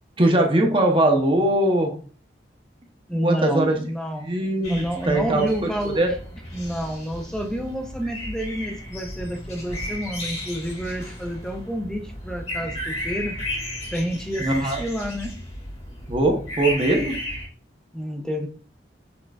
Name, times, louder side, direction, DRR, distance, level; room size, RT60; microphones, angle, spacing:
voice 1, 0.2-1.9 3.1-3.8 4.2-5.7 6.0-6.1 14.4-14.8 16.1-17.1, right 1 dB, 30° right, 2 dB, 0.7 m, -21 dB
voice 2, 3.1-4.3 4.7-6.0 6.5-13.4 13.9-15.3 17.9-18.5, equal, 5° left, 3 dB, 0.6 m, -29 dB
sound 1, 4.6-17.5, left 1 dB, 40° left, 1.8 m, -34 dB
6.1 x 3.8 x 2.3 m, 0.41 s
head